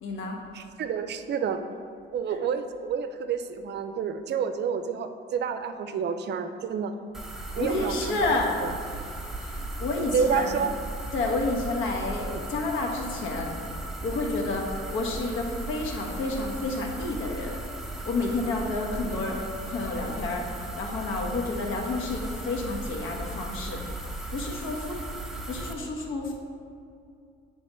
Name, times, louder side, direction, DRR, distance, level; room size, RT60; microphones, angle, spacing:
voice 1, 0.0-0.4 7.6-9.0 9.3-10.7 11.1-13.5 14.0-17.6 18.0-23.9 24.3-25.0 25.5-26.3, left 2 dB, 85° left, 0 dB, 1.2 m, -30 dB
voice 2, 0.5-1.6 2.1-6.9 7.6-8.7 10.1-10.8 12.3-12.4, right 6 dB, 60° right, 9 dB, 0.5 m, -29 dB
sound 1, 7.1-25.7, right 2 dB, ahead, 0.8 m, -37 dB
9.2 x 3.3 x 5.4 m, 2.4 s
cardioid pair, 90°, 20 cm